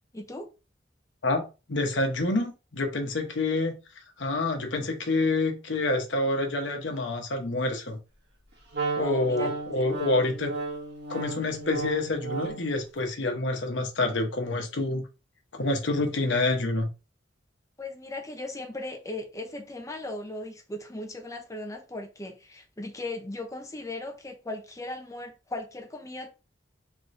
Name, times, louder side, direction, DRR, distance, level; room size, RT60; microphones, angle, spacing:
voice 1, 0.1-0.5 9.0-9.8 17.8-26.3, left 2 dB, 20° left, 0.6 m, -38 dB
voice 2, 1.7-3.7 4.2-8.0 9.0-10.5 11.1-15.0 15.5-16.9, left 2 dB, 90° left, 0.9 m, -27 dB
Wind instrument woodwind instrument, 8.7-12.8, right 4 dB, 70° right, 1.5 m, -34 dB
3.6 x 3.2 x 2.6 m
head